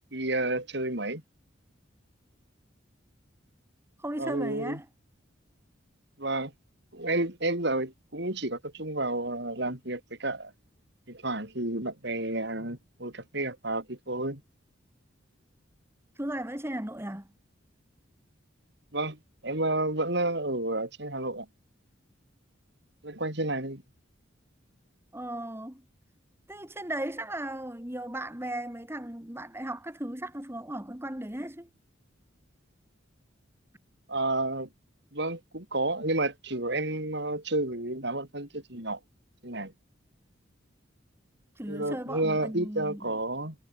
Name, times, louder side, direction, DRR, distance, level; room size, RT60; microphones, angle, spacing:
voice 1, 0.1-1.2 4.2-4.8 6.2-6.5 6.9-10.5 11.1-14.4 18.9-21.5 23.0-23.8 34.1-34.7 35.1-39.0 39.4-39.7 41.7-43.6, right 2 dB, 60° right, 6.1 m, -31 dB
voice 2, 4.0-4.9 16.2-17.3 25.1-25.8 26.5-31.7 41.6-43.1, right 1 dB, 10° right, 2.1 m, -36 dB
head